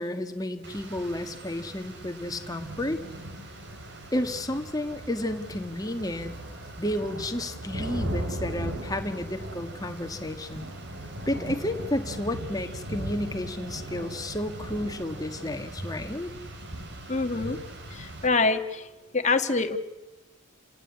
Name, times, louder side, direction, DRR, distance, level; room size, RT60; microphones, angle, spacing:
voice 1, 0.0-3.0 4.1-6.4 6.8-10.7 11.3-16.3, left 1 dB, 20° left, 6 dB, 1.6 m, -31 dB
Rain, 0.6-18.3, right 1 dB, 55° right, 3.0 m, -38 dB
voice 2, 17.1-17.6 17.9-18.9 19.1-19.8, left 3 dB, 35° left, 7 dB, 1.5 m, -25 dB
30.0 x 18.0 x 8.5 m, 1.1 s
head